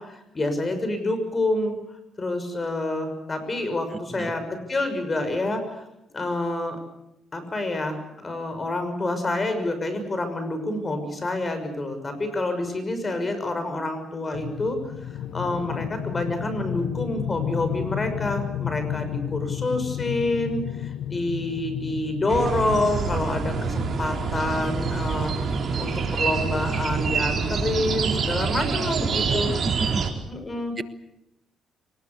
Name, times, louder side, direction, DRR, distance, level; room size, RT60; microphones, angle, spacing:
voice 1, 0.0-1.7 2.2-5.8 6.1-6.8 7.3-14.8 15.3-29.5 30.3-30.7, left 2 dB, 30° left, 8 dB, 6.3 m, -28 dB
voice 2, 3.9-4.3 29.3-30.0 30.8-30.9, right 3 dB, 25° right, 11 dB, 1.4 m, -32 dB
sound 1, 14.3-26.6, left 11 dB, 90° left, 1.0 m, -33 dB
sound 2, 22.3-30.1, right 5 dB, 50° right, 4.1 m, -26 dB
23.5 x 20.5 x 8.4 m, 0.88 s
cardioid pair, 90°, 0 cm